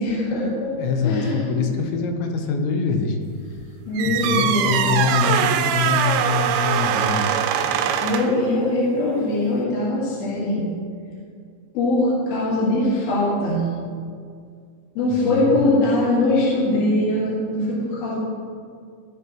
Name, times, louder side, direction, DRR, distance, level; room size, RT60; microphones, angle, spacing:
voice 1, 0.0-0.7 1.0-1.6 3.9-4.9 7.6-10.7 11.7-13.6 14.9-18.1, left 2 dB, 60° left, -8 dB, 3.3 m, -22 dB
voice 2, 0.8-3.2 4.1-7.2 15.1-15.8, left 5 dB, 75° left, 4 dB, 3.1 m, -24 dB
sound 1, 4.0-8.4, right 9 dB, 85° right, 2.7 m, -22 dB
16.5 x 7.3 x 3.0 m, 2.2 s
omnidirectional pair, 5.5 m